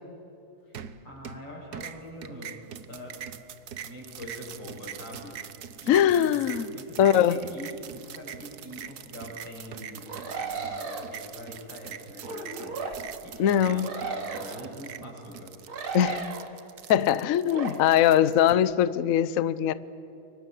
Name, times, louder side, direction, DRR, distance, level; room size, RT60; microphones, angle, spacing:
sound 1, 0.7-1.4 1.7-18.5, right 8 dB, 55° right, 1.3 m, -43 dB
voice 1, 1.0-2.6 2.9-3.2 3.8-6.4 6.7-13.0 13.2-15.5, equal, 55° left, 8.8 m, -43 dB
voice 2, 5.9-6.7 7.0-7.4 13.4-13.9 15.9-16.2 16.9-19.7, left 10 dB, 75° left, 0.7 m, -21 dB
sound 2, 10.1-11.1 12.2-13.0 13.8-14.7 15.7-16.5 17.5-17.7, right 5 dB, 75° right, 3.2 m, -35 dB
29.5 x 23.5 x 7.7 m
omnidirectional pair, 2.3 m